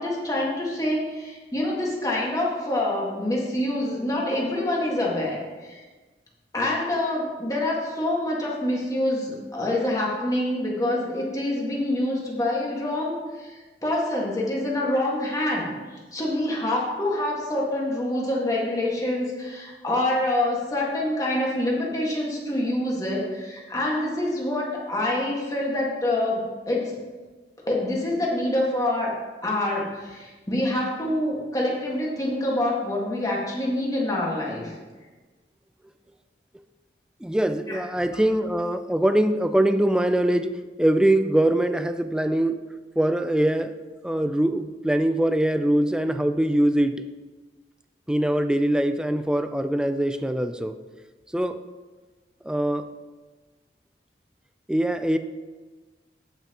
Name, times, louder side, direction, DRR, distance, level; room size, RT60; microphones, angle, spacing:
voice 1, 0.0-5.8 6.5-27.0 27.7-29.1 29.4-34.7 37.7-37.8, left 1 dB, 20° left, -3 dB, 1.7 m, -26 dB
voice 2, 37.2-42.6 43.0-43.7 44.0-47.0 48.1-50.8 51.3-51.6 52.4-52.9 54.7-55.2, right 1 dB, 5° right, 9 dB, 0.3 m, -23 dB
15.5 x 5.8 x 3.0 m, 1.3 s
head